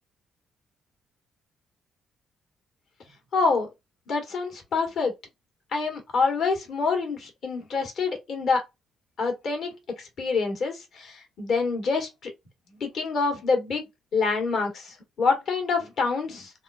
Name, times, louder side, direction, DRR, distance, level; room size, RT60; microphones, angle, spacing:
voice 1, 3.3-3.7 4.1-5.1 5.7-8.6 9.2-12.3 12.8-13.8 14.1-16.5, left 4 dB, 65° left, 1.5 m, -26 dB
3.5 x 2.5 x 2.3 m
cardioid pair, 90°, 0 cm